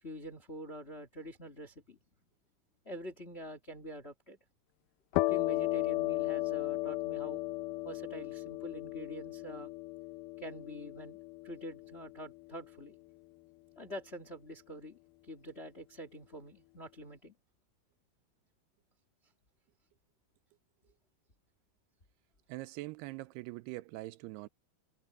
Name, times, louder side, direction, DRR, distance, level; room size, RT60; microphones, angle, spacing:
voice 1, 0.0-2.0 2.8-4.4 5.1-7.4 7.8-9.7 10.4-12.9 13.7-17.3, equal, 30° left, 1.2 m, -46 dB
sound 1, 5.1-12.6, left 20 dB, 80° left, 2.4 m, -35 dB
voice 2, 22.5-24.5, right 20 dB, 85° right, 2.6 m, -43 dB
omnidirectional pair, 4.6 m